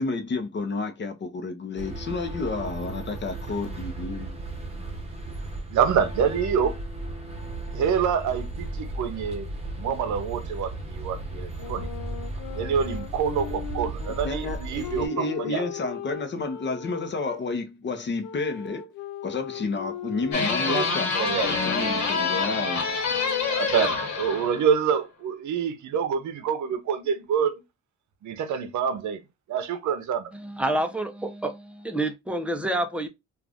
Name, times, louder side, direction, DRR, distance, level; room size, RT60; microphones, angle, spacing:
voice 1, 0.0-4.4 14.2-18.9 19.2-21.1 21.4-22.9, left 3 dB, 35° left, 0.8 m, -31 dB
sound 1, 1.8-15.1, right 2 dB, 20° right, 1.0 m, -35 dB
voice 2, 5.7-6.8 7.7-9.5 9.8-11.9 12.5-15.6 20.6-20.8 21.1-21.7 23.5-27.6 28.2-29.2 29.5-30.3, right 7 dB, 70° right, 0.7 m, -26 dB
Wind instrument woodwind instrument, 11.5-17.4 18.2-24.0, left 10 dB, 85° left, 0.6 m, -39 dB
sound 2, 20.3-24.8, left 4 dB, 65° left, 1.2 m, -26 dB
voice 3, 30.3-33.1, right 1 dB, 5° right, 0.6 m, -28 dB
2.5 x 2.5 x 3.4 m
cardioid pair, 90°, 30 cm